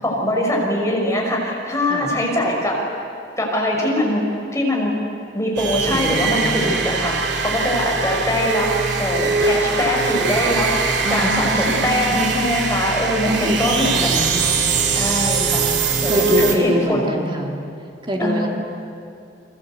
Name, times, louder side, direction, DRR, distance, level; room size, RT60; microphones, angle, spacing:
voice 1, 0.0-2.8 3.4-4.3 4.5-4.9 5.3-8.7 9.0-13.9 14.9-15.6 16.0-17.2 18.2-18.5, left 1 dB, 15° left, -1 dB, 5.6 m, -22 dB
sound 1, 5.6-16.6, right 4 dB, 65° right, 2.6 m, -22 dB
voice 2, 5.8-6.8 11.0-12.2 13.2-14.5 16.0-17.5 18.0-18.5, equal, 25° right, 1 dB, 3.0 m, -25 dB
30.0 x 23.0 x 8.1 m, 2.5 s
head